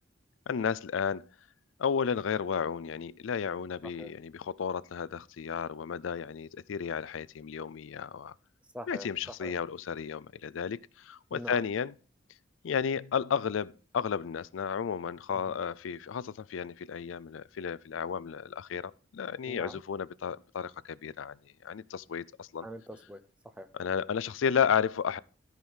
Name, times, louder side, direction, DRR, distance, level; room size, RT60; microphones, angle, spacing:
voice 1, 0.5-1.3 1.8-8.3 8.9-11.9 12.6-21.3 21.6-22.7 23.8-25.2, left 7 dB, 85° left, 0.4 m, -33 dB
voice 2, 8.7-9.5 11.3-11.6 15.3-15.6 19.5-19.8 22.6-23.7, equal, 5° right, 0.7 m, -44 dB
13.5 x 4.9 x 5.5 m
head